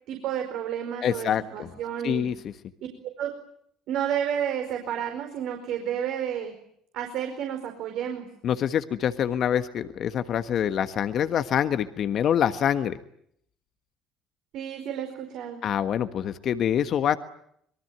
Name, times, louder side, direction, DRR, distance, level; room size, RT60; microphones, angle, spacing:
voice 1, 0.1-2.3 3.0-3.3 3.9-6.5 6.9-8.3 14.5-15.6, right 9 dB, 65° right, 5 dB, 4.8 m, -31 dB
voice 2, 1.0-1.7 2.0-2.5 8.4-13.0 15.6-17.2, left 9 dB, 55° left, 10 dB, 1.5 m, -25 dB
26.0 x 22.5 x 9.6 m, 0.71 s
hypercardioid pair, 55°, 0 cm